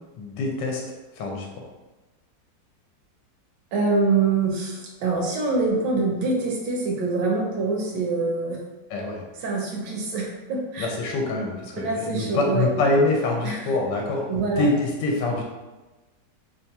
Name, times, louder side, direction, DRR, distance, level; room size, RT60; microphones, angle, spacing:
voice 1, 0.2-0.8 1.2-1.6 8.9-9.2 10.8-15.4, left 2 dB, 75° left, 0 dB, 1.3 m, -25 dB
voice 2, 3.7-8.6 9.4-10.9 11.8-12.7 13.4-13.6 14.3-14.7, right 3 dB, 75° right, -1 dB, 1.3 m, -25 dB
3.5 x 3.4 x 2.8 m, 1.1 s
omnidirectional pair, 2.0 m